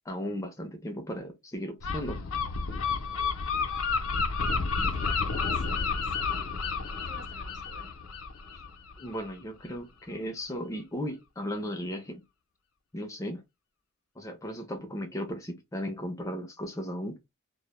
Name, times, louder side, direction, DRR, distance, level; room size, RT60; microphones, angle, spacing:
voice 1, 0.1-2.2 8.5-8.6 9.0-12.2 12.9-13.4 14.2-17.2, equal, 15° left, 0.4 m, -36 dB
Gull seagull, 1.8-9.3, left 4 dB, 85° left, 0.5 m, -31 dB
voice 2, 4.4-7.9, right 1 dB, 60° right, 0.8 m, -52 dB
2.1 x 2.0 x 2.9 m
head